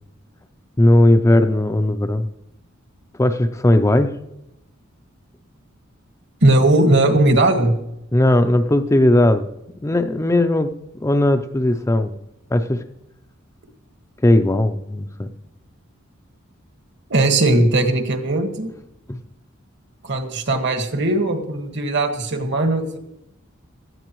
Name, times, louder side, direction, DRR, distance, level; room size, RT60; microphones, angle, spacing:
voice 1, 0.8-2.3 3.2-4.2 8.1-9.5 9.8-10.7 11.0-12.1 12.5-12.8 14.2-15.3 19.1-19.2, left 1 dB, 15° left, 8 dB, 0.5 m, -17 dB
voice 2, 6.4-7.7 17.1-18.7 20.0-23.0, right 2 dB, 60° right, 5 dB, 1.6 m, -18 dB
17.0 x 13.0 x 3.1 m, 0.85 s
head